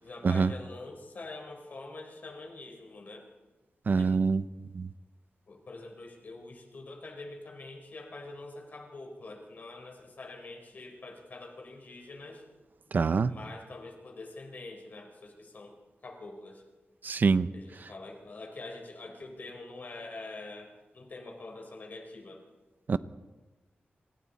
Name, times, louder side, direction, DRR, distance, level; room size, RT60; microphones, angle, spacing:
voice 1, 0.0-3.3 3.9-4.2 5.5-12.4 13.3-15.8 16.0-16.6 17.5-22.4, left 2 dB, 50° left, 2 dB, 4.3 m, -45 dB
voice 2, 3.9-4.4 4.7-4.9 12.9-13.3 17.0-17.5 22.9-23.0, right 5 dB, 50° right, 13 dB, 0.8 m, -25 dB
28.5 x 27.0 x 4.2 m, 1.2 s
wide cardioid pair, 175°, 4 cm